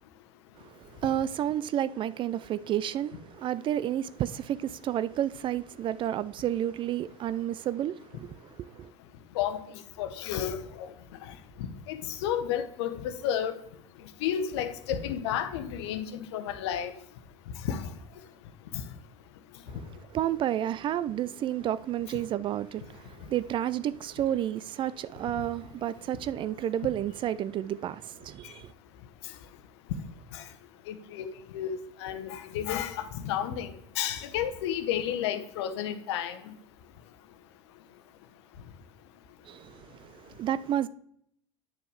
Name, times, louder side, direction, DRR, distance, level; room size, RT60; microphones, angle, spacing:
voice 1, 0.6-8.9 19.7-19.8 20.1-28.7 39.5-40.9, right 11 dB, 30° right, 0.3 m, -31 dB
voice 2, 10.0-10.9 11.2-11.4 11.9-13.6 14.2-16.9 17.6-17.9 18.7-18.8 30.3-30.4 30.9-31.3 31.5-36.5, left 9 dB, 60° left, 1.0 m, -32 dB
9.6 x 6.7 x 3.4 m
figure-of-eight pair, 70°, 16 cm